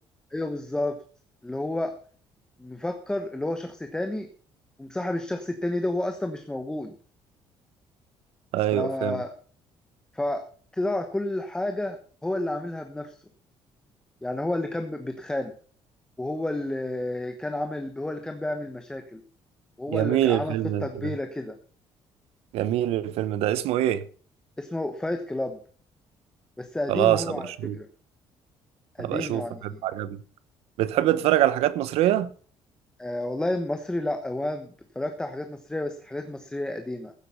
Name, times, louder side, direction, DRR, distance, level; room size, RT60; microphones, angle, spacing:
voice 1, 0.3-1.0 1.4-1.9 2.6-4.3 4.8-6.9 8.7-9.3 10.1-10.4 10.7-12.0 12.2-13.1 14.2-15.5 16.2-19.2 19.8-21.6 24.6-25.6 26.6-27.9 29.0-29.8 33.0-37.1, left 1 dB, 5° left, 1.1 m, -30 dB
voice 2, 8.5-9.2 19.9-21.1 22.5-24.0 26.9-27.8 29.0-30.2 30.8-32.3, right 13 dB, 85° right, 1.0 m, -24 dB
15.5 x 8.2 x 5.6 m
cardioid pair, 165°, 10 cm